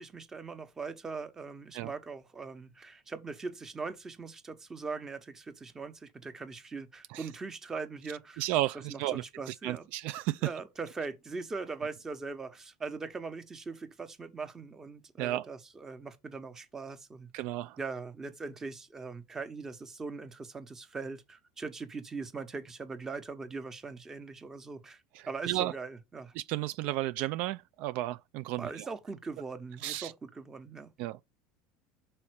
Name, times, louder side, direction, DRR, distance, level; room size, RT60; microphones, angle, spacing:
voice 1, 0.0-8.4 8.9-9.9 10.4-17.4 17.8-25.0 25.3-26.3 28.6-30.9, right 4 dB, 15° right, 1.0 m, -41 dB
voice 2, 8.4-10.5 15.2-15.5 17.3-17.8 25.1-25.7 26.4-28.9 29.8-30.1 31.0-31.2, right 16 dB, 60° right, 0.3 m, -33 dB
5.6 x 4.3 x 4.7 m
supercardioid pair, 125°, 3 cm